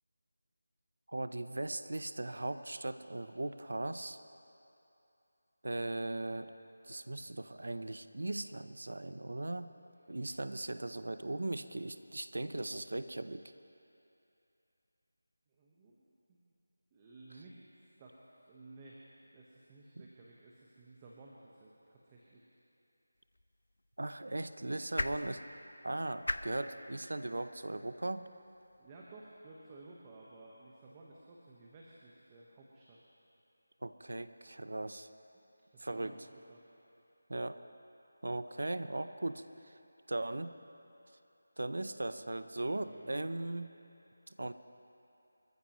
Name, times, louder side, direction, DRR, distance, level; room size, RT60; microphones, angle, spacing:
voice 1, 1.1-4.2 5.6-6.5 6.8-9.7 10.1-13.4 20.0-20.1 24.0-25.4 25.8-28.3 33.8-35.1 35.8-36.1 37.3-37.6 38.2-39.8 40.1-40.5 41.6-43.7 44.3-44.5, right 2 dB, 75° right, 11 dB, 0.6 m, -38 dB
voice 2, 15.5-16.4 16.9-22.5 28.8-33.0 35.7-36.6 42.6-43.1, right 2 dB, 20° right, -4 dB, 1.2 m, -56 dB
sound 1, 23.1-29.4, left 1 dB, 85° left, 0.7 m, -44 dB
26.0 x 14.5 x 3.1 m, 2.8 s
figure-of-eight pair, 170°, 0 cm